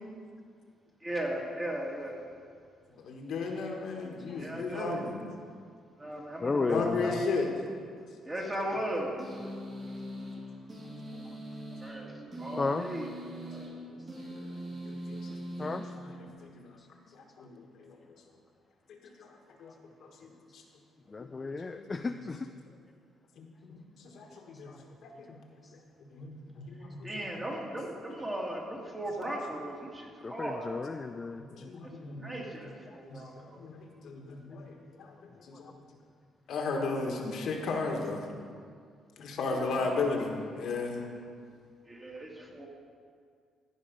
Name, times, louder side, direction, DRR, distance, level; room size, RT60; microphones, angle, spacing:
voice 1, 1.0-2.4 4.4-5.1 6.0-7.2 8.2-9.2 11.8-12.1 12.4-13.7 27.0-30.8 32.2-33.6 39.5-40.1 41.9-42.7, right 1 dB, 20° right, -2 dB, 2.1 m, -37 dB
voice 2, 3.0-5.3 6.5-7.6 9.4-9.5 10.1-10.2 13.8-16.7 17.1-18.0 19.2-19.3 19.6-19.7 20.2-20.6 21.2-21.3 21.7-22.4 23.4-23.8 24.1-24.7 25.0-25.4 26.1-27.2 27.7-28.1 31.6-32.5 33.1-33.2 33.6-35.1 35.4-35.7 36.5-38.3 39.2-41.1 42.3-42.4, left 3 dB, 70° left, 2 dB, 1.4 m, -36 dB
voice 3, 6.4-7.2 12.6-12.9 15.6-15.8 21.1-22.4 30.2-31.4, left 3 dB, 30° left, 7 dB, 0.3 m, -33 dB
sound 1, 9.2-16.6, right 1 dB, 40° right, 2.6 m, -42 dB
15.0 x 5.1 x 5.3 m, 2.1 s
cardioid pair, 90°, 0 cm